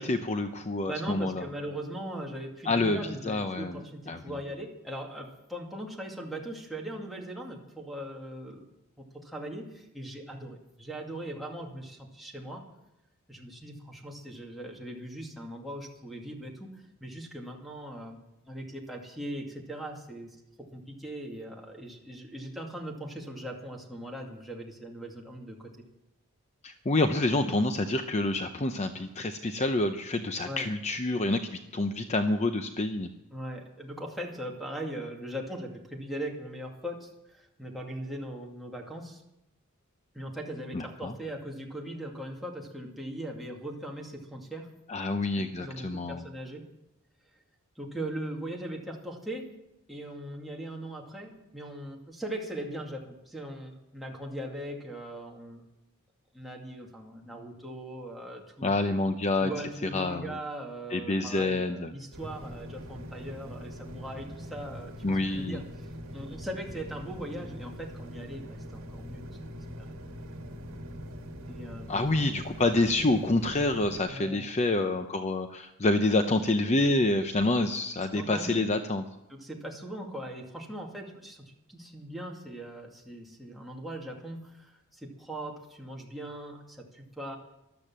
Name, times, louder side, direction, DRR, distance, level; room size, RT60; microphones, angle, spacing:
voice 1, 0.0-1.5 2.7-3.0 3.2-3.8 4.1-4.2 26.6-33.1 40.7-41.1 44.9-46.2 58.6-59.5 59.8-60.4 60.9-61.9 65.0-65.6 71.9-79.0, left 2 dB, 30° left, 8 dB, 0.7 m, -27 dB
voice 2, 0.9-8.7 9.0-12.7 13.3-18.2 18.5-20.4 20.7-25.7 30.4-30.7 33.3-39.2 40.1-44.7 45.2-46.7 47.8-49.5 49.9-55.6 56.3-58.7 59.4-65.6 66.1-69.2 69.5-70.0 71.5-72.0 74.0-74.5 78.1-78.7 79.3-87.4, right 1 dB, ahead, -2 dB, 2.3 m, -40 dB
sound 1, 62.1-74.0, equal, 65° right, 2.0 m, -42 dB
13.5 x 12.0 x 7.5 m, 0.87 s
head